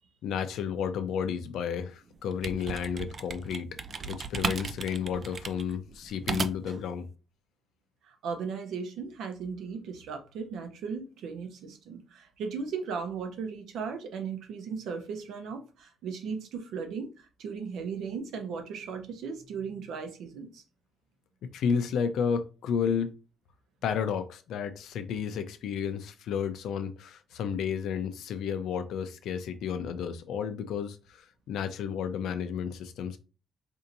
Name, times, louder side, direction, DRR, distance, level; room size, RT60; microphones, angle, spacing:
voice 1, 0.2-3.7 4.1-7.1 21.4-23.1 23.8-33.2, left 7 dB, 75° left, 0.5 m, -32 dB
sound 1, 2.1-6.8, right 4 dB, 35° right, 0.3 m, -35 dB
voice 2, 8.0-20.6, right 5 dB, 75° right, 0.8 m, -37 dB
4.3 x 2.8 x 2.6 m
cardioid pair, 135°, 0 cm